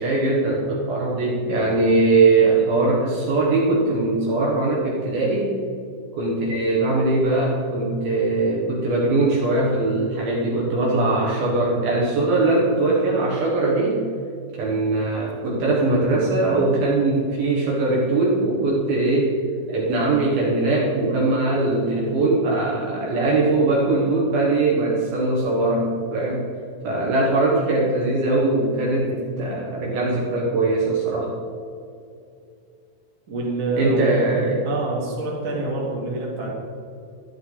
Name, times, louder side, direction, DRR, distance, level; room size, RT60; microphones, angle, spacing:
voice 1, 0.0-5.5 6.2-14.0 14.5-19.3 19.7-26.4 26.8-31.3 33.7-34.7, right 2 dB, 60° right, -4 dB, 2.8 m, -21 dB
voice 2, 33.3-34.1 34.6-36.5, right 2 dB, 30° right, -4 dB, 1.5 m, -26 dB
12.5 x 11.5 x 4.0 m, 2.4 s
omnidirectional pair, 5.9 m